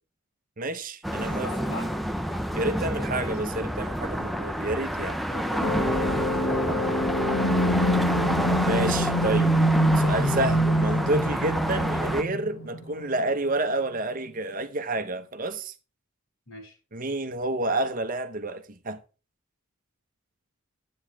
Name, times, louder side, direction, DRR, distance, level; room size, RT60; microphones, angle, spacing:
voice 1, 0.6-1.5 2.5-5.2 8.6-9.5 9.9-15.7 16.9-19.0, right 2 dB, 40° right, 0.9 m, -29 dB
sound 1, 1.0-12.2, equal, ahead, 0.6 m, -29 dB
voice 2, 1.3-1.9 2.5-3.7 5.3-7.6 16.5-16.7, left 1 dB, 75° left, 6.4 m, -39 dB
sound 2, 5.6-13.3, equal, 60° left, 2.2 m, -25 dB
12.0 x 8.7 x 3.5 m
head